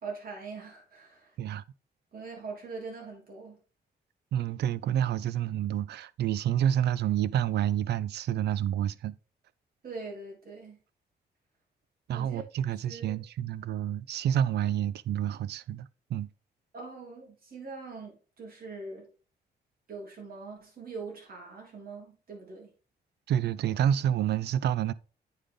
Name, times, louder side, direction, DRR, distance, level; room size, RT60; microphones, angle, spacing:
voice 1, 0.0-1.4 2.1-3.6 9.8-10.8 12.1-12.4 12.7-13.1 16.7-19.1 19.9-22.7, right 4 dB, 60° right, 3.2 m, -42 dB
voice 2, 4.3-9.1 12.1-16.3 23.3-24.9, right 10 dB, 80° right, 0.4 m, -28 dB
8.3 x 5.0 x 3.7 m
wide cardioid pair, 125°, 17 cm